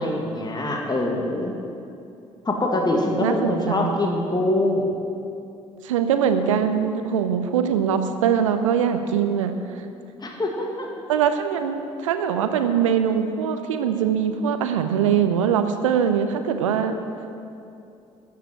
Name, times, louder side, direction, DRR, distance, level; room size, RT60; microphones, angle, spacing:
voice 1, 0.0-1.5 2.5-5.0 10.2-10.9, left 1 dB, 25° left, 1 dB, 1.9 m, -24 dB
voice 2, 3.2-4.0 5.8-9.5 11.1-17.0, right 8 dB, 80° right, 8 dB, 0.7 m, -22 dB
13.5 x 6.8 x 9.1 m, 2.6 s
figure-of-eight pair, 45°, 16 cm